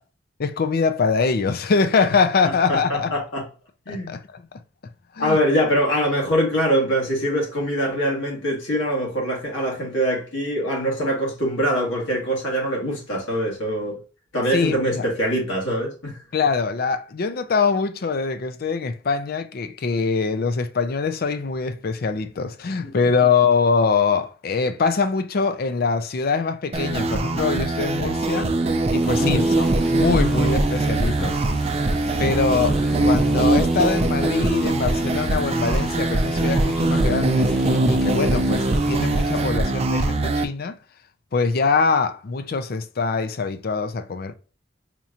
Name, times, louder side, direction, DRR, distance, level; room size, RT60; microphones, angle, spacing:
voice 1, 0.4-3.2 3.9-4.4 5.2-5.4 14.5-15.1 16.3-28.5 28.9-31.4 32.2-40.7 41.3-44.3, left 5 dB, 55° left, 0.5 m, -23 dB
voice 2, 2.4-3.4 3.9-4.1 5.2-14.0 14.3-16.2 29.2-29.5, equal, 85° left, 1.7 m, -23 dB
sound 1, 26.7-40.4, right 2 dB, 35° right, 0.5 m, -21 dB
sound 2, 29.0-39.5, equal, ahead, 0.7 m, -34 dB
4.4 x 2.9 x 2.4 m
head